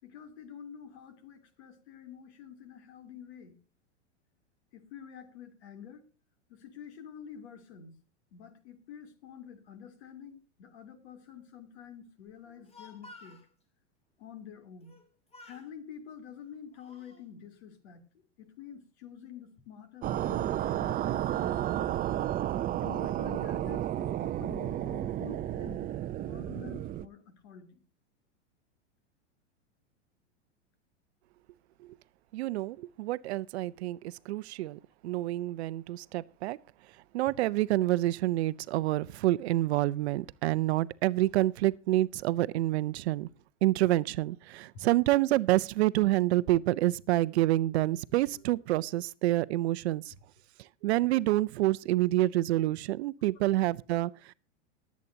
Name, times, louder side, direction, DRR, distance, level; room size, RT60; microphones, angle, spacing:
voice 1, 0.0-3.6 4.7-6.0 6.5-8.0 8.3-13.4 14.2-14.9 15.4-18.1 18.4-21.9 22.8-25.9 26.2-27.8 44.7-44.8, left 8 dB, 65° left, 3.0 m, -48 dB
Speech, 12.4-13.5 14.8-15.1 15.3-15.7 16.4-17.2, left 2 dB, 15° left, 2.8 m, -53 dB
sound 1, 20.0-27.1, right 12 dB, 25° right, 0.6 m, -32 dB
voice 2, 32.3-36.6 37.1-43.3 43.6-50.1 50.6-54.3, right 16 dB, 65° right, 0.6 m, -28 dB
23.0 x 8.4 x 2.8 m
hypercardioid pair, 105°, 35 cm